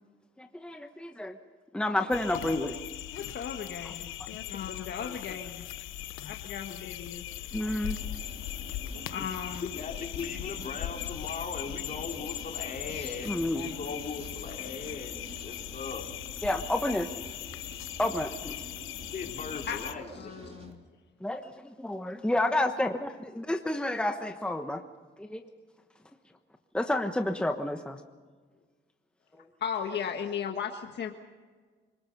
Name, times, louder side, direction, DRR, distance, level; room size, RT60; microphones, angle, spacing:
voice 1, 0.4-1.4 1.7-2.8 7.5-8.0 13.2-13.6 16.4-17.1 18.0-18.6 21.2-24.8 25.2-25.4 26.7-28.0, left 1 dB, 5° left, 6 dB, 1.2 m, -30 dB
sound 1, 2.1-19.9, left 12 dB, 90° left, 0.9 m, -39 dB
voice 2, 2.3-2.7 3.1-4.1 4.5-5.7 6.2-7.2 9.1-9.7 12.9-13.2 13.6-13.8 19.6-20.8 29.6-31.1, left 7 dB, 60° left, 4 dB, 1.6 m, -37 dB
sound 2, 7.7-20.7, right 2 dB, 30° right, 3.2 m, -48 dB
voice 3, 9.7-16.1 19.1-20.3, left 5 dB, 40° left, 1 dB, 4.0 m, -39 dB
27.0 x 20.0 x 5.5 m, 1.5 s
cardioid pair, 90°, 20 cm